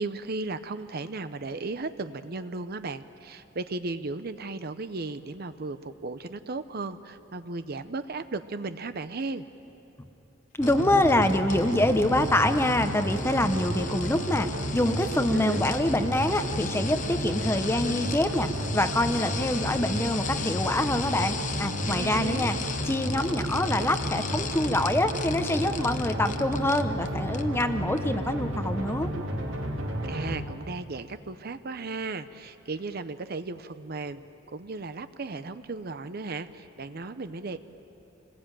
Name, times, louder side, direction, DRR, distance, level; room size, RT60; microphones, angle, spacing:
voice 1, 0.0-9.5 15.3-15.6 21.8-22.5 30.0-34.2 34.5-37.6, right 3 dB, 50° right, 11 dB, 0.7 m, -35 dB
sound 1, 10.6-27.1 27.3-27.6 28.0-28.1, left 7 dB, 40° left, 1.0 m, -38 dB
voice 2, 10.6-14.5 14.7-22.6 22.9-29.1, left 1 dB, 10° left, 9 dB, 0.9 m, -25 dB
sound 2, 10.6-30.4, equal, 75° right, 3.0 m, -32 dB
27.0 x 20.0 x 9.0 m, 3.0 s
head